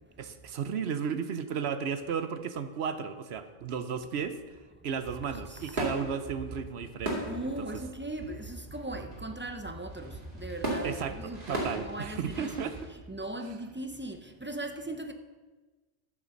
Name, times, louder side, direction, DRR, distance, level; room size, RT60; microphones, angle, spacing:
voice 1, 0.2-4.4 4.8-7.3 7.6-7.7 10.8-12.7, right 6 dB, 65° right, 0.9 m, -34 dB
sound 1, 5.0-12.9, right 1 dB, 45° right, 2.7 m, -38 dB
voice 2, 5.3-5.8 7.0-15.1, right 1 dB, 15° right, 0.4 m, -39 dB
12.5 x 6.0 x 6.4 m
omnidirectional pair, 1.2 m